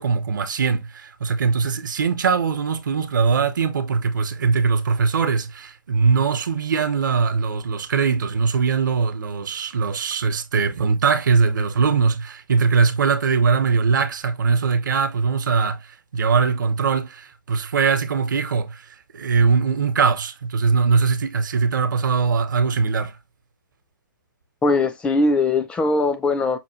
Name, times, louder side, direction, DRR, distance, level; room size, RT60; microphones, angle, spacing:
voice 1, 0.0-18.8 19.1-23.2, right 5 dB, 70° right, 0.9 m, -21 dB
voice 2, 24.6-26.6, left 3 dB, 10° left, 0.4 m, -20 dB
5.9 x 2.2 x 2.9 m
hypercardioid pair, 130°, 11 cm